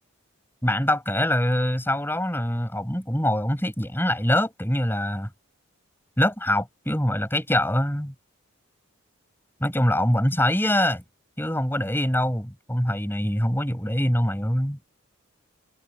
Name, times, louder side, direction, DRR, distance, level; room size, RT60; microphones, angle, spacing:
voice 1, 0.6-5.3 6.2-8.1 9.6-11.0 11.4-14.8, left 1 dB, 10° left, 7.6 m, -24 dB
head